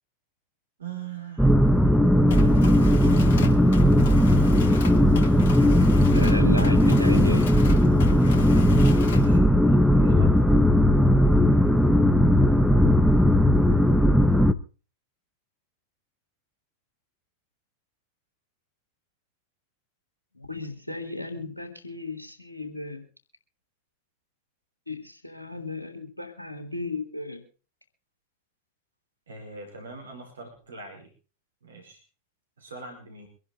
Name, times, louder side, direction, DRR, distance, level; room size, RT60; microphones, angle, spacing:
voice 1, 0.8-2.9 3.2-3.8 9.0-10.6 29.3-31.1 31.6-32.0 32.6-33.3, right 5 dB, 70° right, 3 dB, 4.8 m, -42 dB
sound 1, 1.4-14.5, equal, ahead, 1.1 m, -18 dB
Mechanisms, 2.3-9.4, left 6 dB, 60° left, 2.1 m, -39 dB
voice 2, 6.1-7.5 20.3-23.0 24.9-27.4, left 3 dB, 85° left, 8 dB, 3.7 m, -34 dB
25.0 x 11.0 x 3.9 m, 0.36 s
figure-of-eight pair, 90°, 0 cm